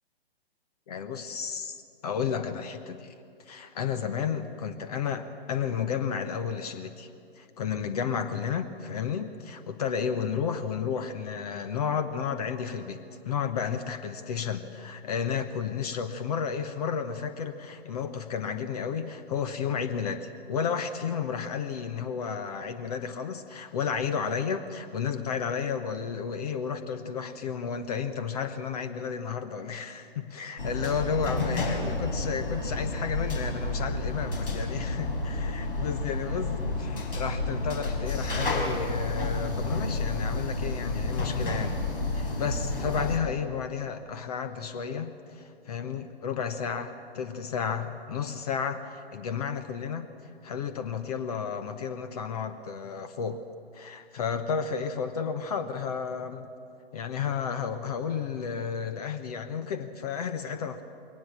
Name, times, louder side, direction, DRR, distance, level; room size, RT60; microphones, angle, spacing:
voice 1, 0.9-1.8 2.0-3.1 3.5-7.1 7.4-41.8 42.1-50.1 50.4-53.4 53.7-56.5 56.9-60.8, left 7 dB, 40° left, 10 dB, 1.0 m, -32 dB
sound 1, 30.6-43.2, left 2 dB, 60° left, 3.9 m, -30 dB
21.5 x 18.5 x 7.2 m, 2.5 s
figure-of-eight pair, 125°, 32 cm